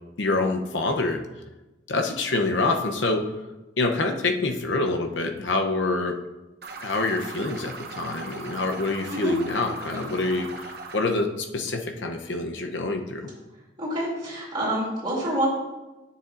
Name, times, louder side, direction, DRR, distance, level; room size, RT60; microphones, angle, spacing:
voice 1, 0.2-1.2 1.9-3.2 3.8-6.2 6.8-13.3, left 3 dB, 75° left, 4 dB, 0.8 m, -26 dB
sound 1, 6.6-11.0, right 3 dB, 55° right, 0.9 m, -39 dB
voice 2, 13.8-15.5, right 1 dB, 25° right, -7 dB, 2.9 m, -27 dB
10.0 x 7.1 x 2.6 m, 1.1 s
head